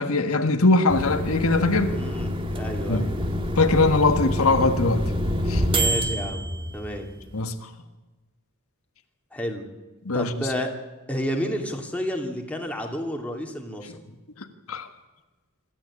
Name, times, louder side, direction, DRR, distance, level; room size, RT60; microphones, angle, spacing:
voice 1, 0.0-1.9 2.9-3.0 3.6-5.0 5.5-5.6 7.3-7.7 10.0-10.5 14.4-14.9, left 2 dB, 85° left, 1.7 m, -21 dB
sound 1, 0.9-7.3, equal, 25° right, 1.7 m, -27 dB
voice 2, 1.9-3.2 5.7-6.5 6.7-7.1 9.3-9.7 10.1-10.7 11.1-14.0, equal, 5° left, 2.7 m, -30 dB
25.5 x 13.5 x 8.6 m
head